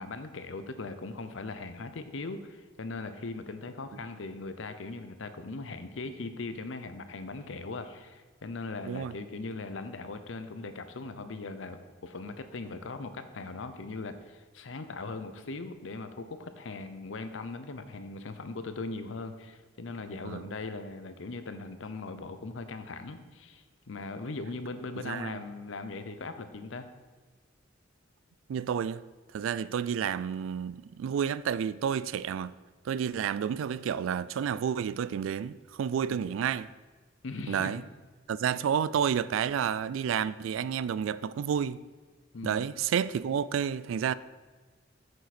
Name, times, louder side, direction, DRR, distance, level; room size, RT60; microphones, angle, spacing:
voice 1, 0.0-26.9 36.1-36.2 37.2-37.8 42.3-42.6, left 3 dB, 75° left, 0.7 m, -39 dB
voice 2, 8.8-9.1 20.2-20.5 25.0-25.4 28.5-29.0 29.3-32.6 32.9-36.7 37.5-37.8 38.3-41.8 42.4-44.1, right 8 dB, 85° right, 0.3 m, -30 dB
9.1 x 6.7 x 4.2 m
head